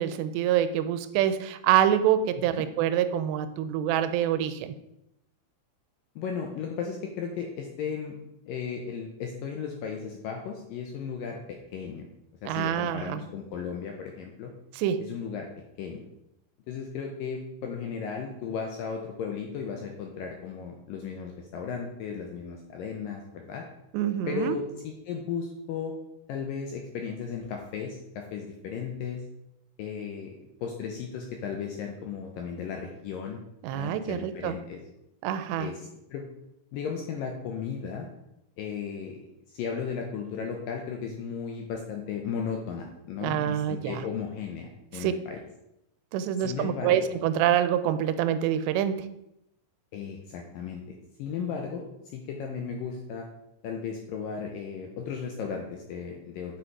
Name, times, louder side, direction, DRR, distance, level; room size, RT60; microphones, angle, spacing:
voice 1, 0.0-4.7 12.5-13.2 14.7-15.1 23.9-24.6 33.6-34.6 35.2-35.7 43.2-44.0 44.9-45.1 46.1-49.1, right 10 dB, 90° right, 11 dB, 2.8 m, -26 dB
voice 2, 6.2-8.1 8.5-12.1 12.4-14.5 15.0-15.5 15.8-16.0 16.7-23.6 24.3-25.9 26.3-29.2 29.8-33.4 33.7-34.8 35.6-36.2 36.7-38.1 38.6-45.4 46.4-47.1 49.9-50.8 51.2-51.8 52.1-53.3 53.6-56.6, left 6 dB, 80° left, 2 dB, 2.1 m, -35 dB
8.3 x 6.1 x 4.6 m, 0.84 s
omnidirectional pair, 4.9 m